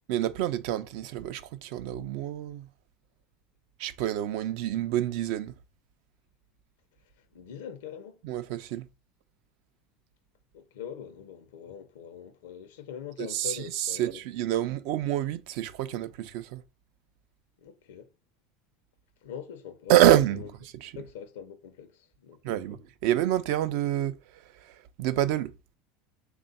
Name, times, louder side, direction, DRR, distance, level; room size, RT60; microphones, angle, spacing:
voice 1, 0.1-2.7 3.8-5.5 8.2-8.9 13.2-16.6 19.9-21.1 22.4-25.6, right 12 dB, 70° right, 0.4 m, -27 dB
voice 2, 7.3-8.2 10.5-14.1 17.6-18.1 19.2-20.1 20.3-20.5 20.9-22.8, left 8 dB, 85° left, 0.7 m, -43 dB
3.4 x 2.4 x 4.0 m
supercardioid pair, 110°, 0 cm